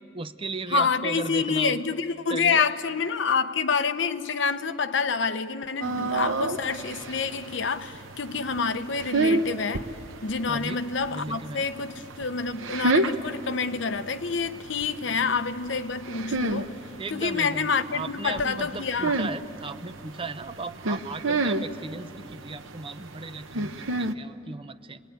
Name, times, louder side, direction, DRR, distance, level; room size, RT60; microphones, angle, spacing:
voice 1, 0.1-1.8 2.3-2.8 10.5-10.8 11.1-11.6 15.1-15.3 16.9-25.0, right 3 dB, 25° right, 0.6 m, -36 dB
voice 2, 0.7-9.9 10.2-16.7 17.1-19.1, left 5 dB, 65° left, 0.8 m, -27 dB
sound 1, 5.8-24.1, right 2 dB, 85° right, 0.9 m, -31 dB
27.5 x 19.5 x 9.2 m
head